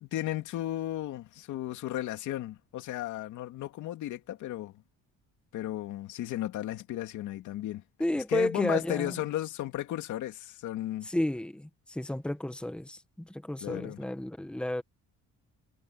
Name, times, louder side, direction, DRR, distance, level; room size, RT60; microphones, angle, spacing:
voice 1, 0.0-4.8 5.5-7.8 8.3-11.1 13.6-14.0, left 13 dB, 75° left, 2.8 m, -35 dB
voice 2, 8.0-9.2 11.0-14.8, left 1 dB, 5° left, 1.5 m, -32 dB
cardioid pair, 135°, 30 cm